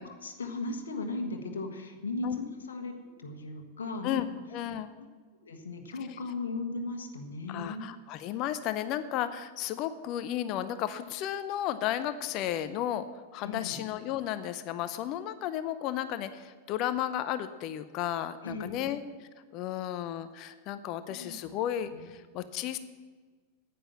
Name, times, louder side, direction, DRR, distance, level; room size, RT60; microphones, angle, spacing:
voice 1, 0.0-2.9 3.2-4.4 5.4-7.9 13.4-13.8 18.4-18.9 21.1-21.5 21.9-22.1, left 2 dB, 70° left, 4 dB, 1.4 m, -37 dB
voice 2, 4.5-4.9 6.1-6.2 7.5-13.0 13.3-22.8, left 11 dB, 40° left, 12 dB, 0.6 m, -33 dB
10.0 x 9.3 x 7.2 m, 1.4 s
figure-of-eight pair, 90°, 0 cm